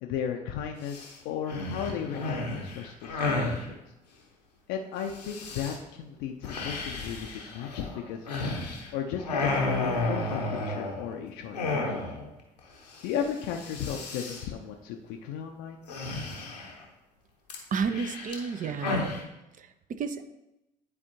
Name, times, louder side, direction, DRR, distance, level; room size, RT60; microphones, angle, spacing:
voice 1, 0.0-3.8 4.7-8.3 8.9-12.1 13.0-15.8, left 8 dB, 65° left, 3 dB, 0.6 m, -35 dB
sound 1, 0.8-1.1 1.5-3.6 5.1-5.8 6.4-8.9 9.2-11.1 11.5-12.3 12.6-12.7 12.9-13.2 13.5-14.4 15.9-16.8 17.5-19.2, left 2 dB, 90° left, 1.0 m, -32 dB
voice 2, 17.7-19.1 19.6-20.3, right 5 dB, 40° right, 10 dB, 0.6 m, -32 dB
10.0 x 4.3 x 2.8 m, 0.93 s
figure-of-eight pair, 50°, 20 cm